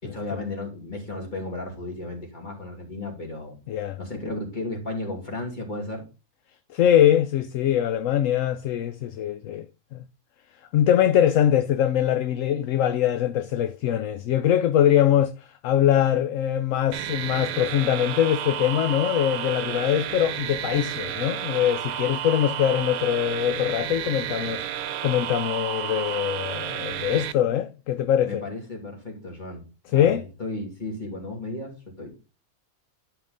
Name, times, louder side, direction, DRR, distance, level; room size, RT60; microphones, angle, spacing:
voice 1, 0.0-3.6 4.0-6.0 28.2-32.2, left 2 dB, 30° left, 2.8 m, -34 dB
voice 2, 3.7-4.0 6.7-9.7 9.9-10.0 10.7-28.4 29.9-30.2, left 10 dB, 70° left, 0.9 m, -22 dB
sound 1, 16.9-27.3, right 11 dB, 80° right, 1.1 m, -31 dB
11.0 x 5.2 x 3.9 m
omnidirectional pair, 1.5 m